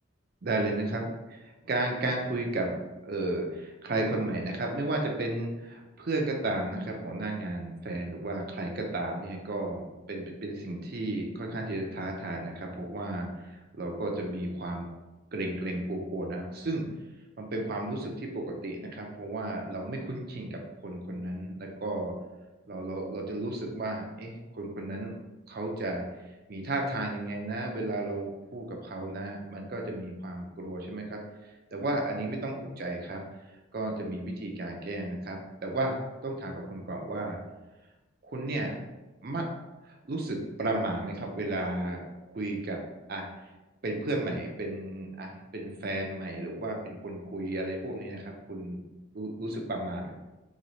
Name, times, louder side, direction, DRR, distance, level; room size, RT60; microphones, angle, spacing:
voice 1, 0.4-2.7 3.0-14.9 15.3-16.8 17.4-22.1 22.7-25.1 25.5-26.0 26.5-33.2 33.7-36.0 36.2-37.4 38.2-38.8 39.2-39.5 39.8-42.0 42.3-42.8 43.1-43.3 43.8-48.8 49.1-50.1, right 2 dB, 45° right, 1 dB, 0.5 m, -33 dB
3.0 x 2.3 x 3.9 m, 1.1 s
head